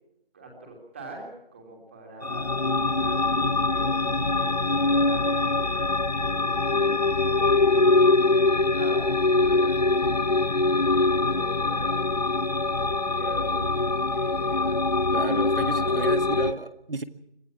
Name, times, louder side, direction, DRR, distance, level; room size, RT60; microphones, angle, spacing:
voice 1, 0.3-7.0 7.2-8.1 8.5-16.0, right 2 dB, 15° right, 1 dB, 3.1 m, -44 dB
sound 1, 2.2-16.5, left 3 dB, 45° left, 0.9 m, -23 dB
voice 2, 15.1-17.0, right 3 dB, 70° right, 10 dB, 2.1 m, -32 dB
25.5 x 17.0 x 6.0 m, 0.80 s
figure-of-eight pair, 175°, 29 cm